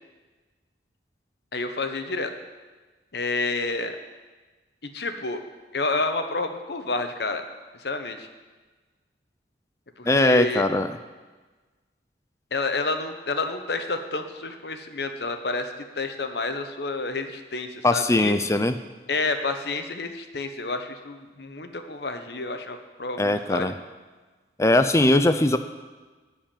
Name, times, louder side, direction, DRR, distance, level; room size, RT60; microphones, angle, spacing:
voice 1, 1.5-2.3 3.1-3.9 4.9-5.4 5.7-7.4 7.8-8.3 10.0-10.6 12.5-18.4 19.1-23.7, left 3 dB, 75° left, 7 dB, 1.1 m, -29 dB
voice 2, 10.1-10.9 17.8-18.8 23.2-23.7 24.6-25.6, left 2 dB, 15° left, 9 dB, 0.4 m, -20 dB
14.0 x 4.8 x 9.0 m, 1.3 s
head